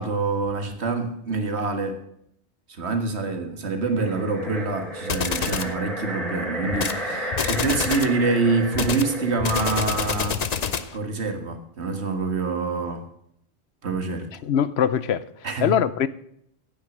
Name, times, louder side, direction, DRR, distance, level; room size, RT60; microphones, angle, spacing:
voice 1, 0.0-2.0 2.8-10.4 10.9-13.0 13.8-14.3 15.4-15.7, right 3 dB, 75° right, 1.9 m, -26 dB
sound 1, 3.8-10.3, equal, ahead, 2.6 m, -33 dB
sound 2, 5.1-5.7 6.7-7.0 7.3-8.2 8.7-11.0, left 6 dB, 45° left, 0.7 m, -27 dB
voice 2, 14.4-15.3 15.6-16.1, left 9 dB, 70° left, 0.9 m, -22 dB
9.8 x 9.3 x 7.3 m
omnidirectional pair, 1.1 m